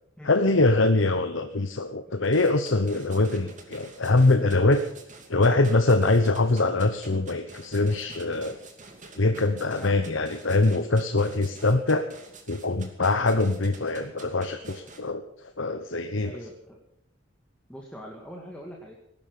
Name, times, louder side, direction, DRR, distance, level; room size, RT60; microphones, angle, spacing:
voice 1, 0.2-4.8 5.3-8.6 9.2-12.1 12.5-15.2 15.6-16.4, left 2 dB, 65° left, 7 dB, 1.0 m, -23 dB
sound 1, 2.2-15.0, right 3 dB, 40° right, 2.7 m, -47 dB
voice 2, 16.2-16.8 17.7-18.9, equal, 5° left, -1 dB, 2.1 m, -42 dB
18.5 x 11.0 x 6.7 m, 0.73 s
head